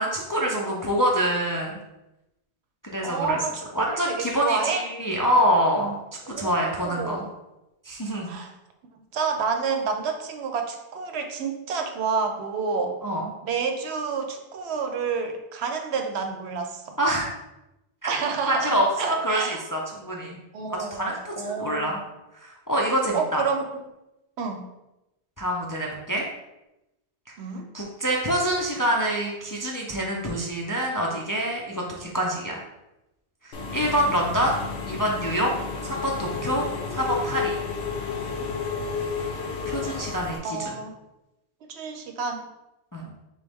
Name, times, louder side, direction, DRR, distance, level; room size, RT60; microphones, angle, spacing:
voice 1, 0.0-1.8 2.8-3.4 3.8-6.0 6.3-7.2 7.9-8.4 13.0-13.3 17.0-17.3 18.0-18.1 18.5-20.4 20.9-22.0 22.4-23.4 25.4-26.2 27.7-32.6 33.4-34.6 34.9-35.5 35.8-36.7 36.9-37.6 39.7-40.7 42.9-43.0, equal, 30° left, -2 dB, 0.3 m, -26 dB
voice 2, 3.0-4.8 6.3-7.3 8.3-8.5 9.1-13.0 13.4-17.0 18.1-19.6 20.5-22.0 23.1-23.8 24.4-24.7 27.4-27.7 40.4-40.9 41.7-42.5, right 5 dB, 80° right, 4 dB, 0.9 m, -29 dB
Engine / Mechanisms, 33.5-40.4, left 5 dB, 85° left, 0.9 m, -31 dB
3.9 x 3.1 x 3.4 m, 0.94 s
omnidirectional pair, 1.1 m